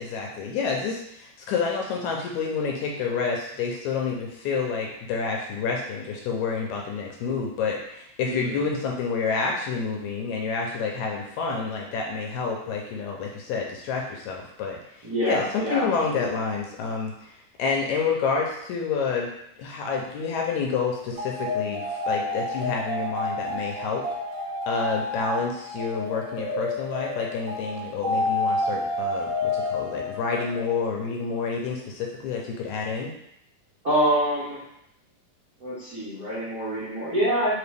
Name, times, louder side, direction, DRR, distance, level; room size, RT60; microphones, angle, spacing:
voice 1, 0.0-19.3 19.6-24.0 24.7-33.1, left 5 dB, 80° left, 0 dB, 1.9 m, -29 dB
voice 2, 8.2-8.6 15.0-16.3 33.8-34.6 35.6-37.6, right 1 dB, 45° right, -12 dB, 1.2 m, -26 dB
sound 1, 21.1-30.9, left 2 dB, 75° right, 1.4 m, -30 dB
4.6 x 2.9 x 3.3 m, 0.74 s
omnidirectional pair, 3.6 m